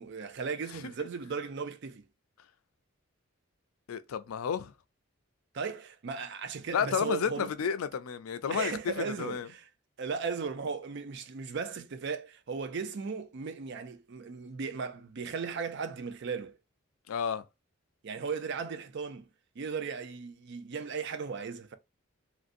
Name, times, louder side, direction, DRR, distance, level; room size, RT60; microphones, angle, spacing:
voice 1, 0.0-2.1 5.5-7.5 8.5-9.6 10.0-16.6 18.0-19.3 19.6-21.8, right 5 dB, 55° right, 0.4 m, -36 dB
voice 2, 3.9-4.7 6.7-9.5 17.1-17.4, left 7 dB, 90° left, 0.4 m, -31 dB
3.1 x 2.6 x 2.5 m
head